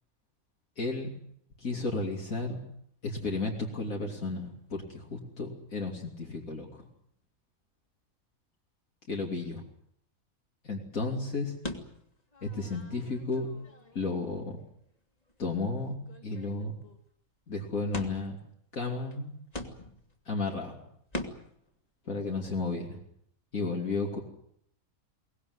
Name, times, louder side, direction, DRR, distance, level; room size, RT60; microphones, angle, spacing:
voice 1, 0.8-1.1 1.6-2.6 3.0-6.8 9.1-9.6 10.6-11.6 12.4-13.5 13.9-14.6 15.4-16.0 16.2-16.8 17.5-18.4 18.7-19.3 20.3-20.8 22.1-23.0 23.5-24.2, left 3 dB, 70° left, 0 dB, 3.4 m, -33 dB
sound 1, 11.6-14.2 14.6-14.7 15.3-15.5 15.7-15.8 16.0-17.0 17.9-18.4 19.1-19.2 19.5-20.2 21.1-21.6, left 1 dB, 25° left, 2.4 m, -42 dB
23.0 x 19.0 x 9.6 m, 0.71 s
omnidirectional pair, 1.5 m